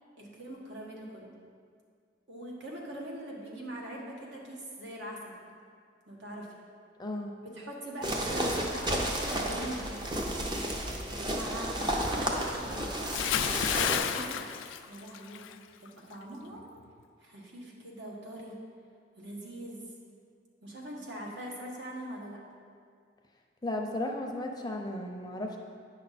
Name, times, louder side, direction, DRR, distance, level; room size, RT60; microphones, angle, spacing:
voice 1, 0.2-1.3 2.3-5.3 6.1-6.5 7.4-10.0 11.0-13.4 13.8-14.5 14.9-15.4 15.8-16.6 17.2-18.6 19.2-19.9 20.6-22.4, right 1 dB, 65° right, -2 dB, 1.4 m, -42 dB
voice 2, 7.0-7.3 23.6-25.6, left 1 dB, 20° left, 2 dB, 0.6 m, -34 dB
sound 1, 8.0-14.0, right 1 dB, 25° right, 0.7 m, -32 dB
Bathtub (filling or washing) / Splash splatter, 13.1-15.5 15.9-16.1, left 9 dB, 80° left, 0.4 m, -31 dB
9.2 x 5.6 x 4.2 m, 2.2 s
head